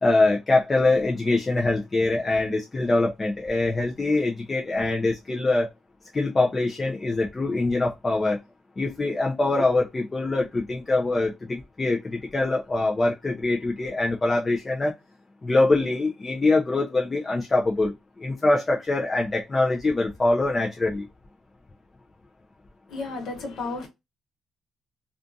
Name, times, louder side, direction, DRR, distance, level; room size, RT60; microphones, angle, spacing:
voice 1, 0.0-5.7 6.1-8.4 8.8-14.9 15.4-17.9 18.2-21.0, left 2 dB, 25° left, 0.5 m, -23 dB
voice 2, 22.9-23.9, left 3 dB, 70° left, 1.2 m, -32 dB
2.5 x 2.5 x 2.6 m
cardioid pair, 90°, 0 cm